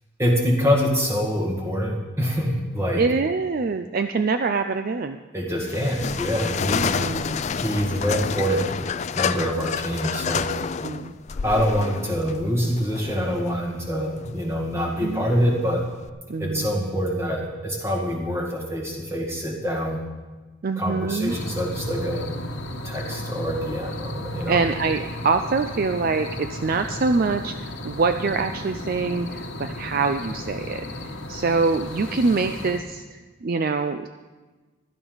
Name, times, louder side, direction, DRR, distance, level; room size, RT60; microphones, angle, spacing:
voice 1, 0.2-3.0 5.3-6.9 7.6-8.7 9.1-10.5 11.4-15.8 16.4-20.0 20.8-22.3 22.8-24.6, equal, 10° right, -1 dB, 2.0 m, -25 dB
voice 2, 3.0-5.2 6.7-7.4 10.8-11.1 15.0-15.3 16.3-16.9 20.6-21.4 24.5-34.1, right 4 dB, 45° right, 7 dB, 0.4 m, -25 dB
sound 1, 5.6-16.1, left 6 dB, 30° left, 0.3 m, -29 dB
sound 2, 21.3-32.8, left 1 dB, 55° left, 1.2 m, -34 dB
16.0 x 12.0 x 4.0 m, 1.3 s
head